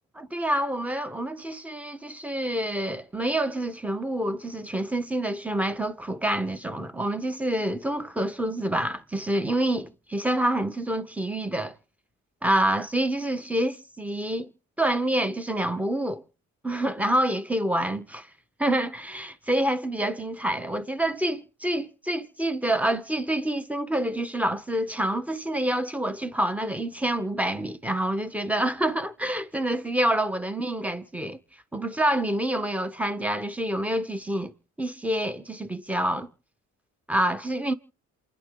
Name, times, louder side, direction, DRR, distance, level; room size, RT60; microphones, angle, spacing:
voice 1, 0.1-11.7 12.4-14.5 14.8-16.2 16.6-18.3 18.6-31.4 31.7-34.5 34.8-36.3 37.1-37.7, right 1 dB, 5° right, 1.3 m, -27 dB
28.0 x 11.0 x 3.9 m
cardioid pair, 90°, 30 cm